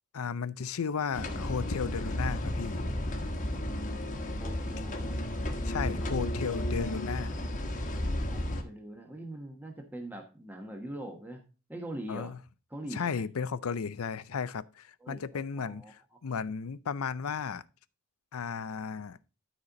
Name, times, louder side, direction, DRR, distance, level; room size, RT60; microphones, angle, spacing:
voice 1, 0.1-2.8 5.6-7.3 12.1-12.4 12.9-17.6 18.3-19.2, left 6 dB, 80° left, 0.5 m, -34 dB
sound 1, 1.1-8.6, left 1 dB, 35° left, 1.3 m, -33 dB
voice 2, 4.4-5.2 8.3-11.4 11.7-12.3 12.7-13.2 15.0-15.2 15.6-15.9, right 1 dB, 10° right, 1.1 m, -42 dB
13.0 x 4.3 x 3.8 m
head